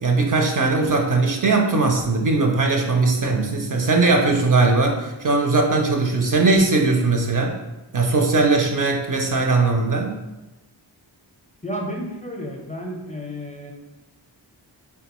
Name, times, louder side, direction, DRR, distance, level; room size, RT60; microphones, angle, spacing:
voice 1, 0.0-7.6 7.9-10.2, right 3 dB, 45° right, 1 dB, 0.5 m, -19 dB
voice 2, 11.6-13.7, equal, 15° left, 0 dB, 0.5 m, -31 dB
3.5 x 2.2 x 2.9 m, 1.0 s
wide cardioid pair, 55°, 44 cm